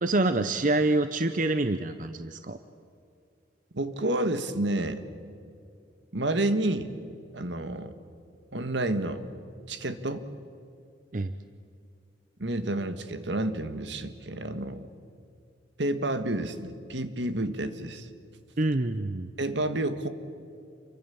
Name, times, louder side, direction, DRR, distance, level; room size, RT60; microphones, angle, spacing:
voice 1, 0.0-2.6 11.1-11.3 18.6-19.3, right 2 dB, 45° right, 10 dB, 0.7 m, -26 dB
voice 2, 3.7-5.0 6.1-6.9 7.3-8.0 8.5-9.2 9.7-10.2 12.4-14.9 15.8-18.1 19.4-20.1, right 1 dB, 75° right, 10 dB, 1.6 m, -29 dB
28.0 x 23.5 x 7.2 m, 2.4 s
head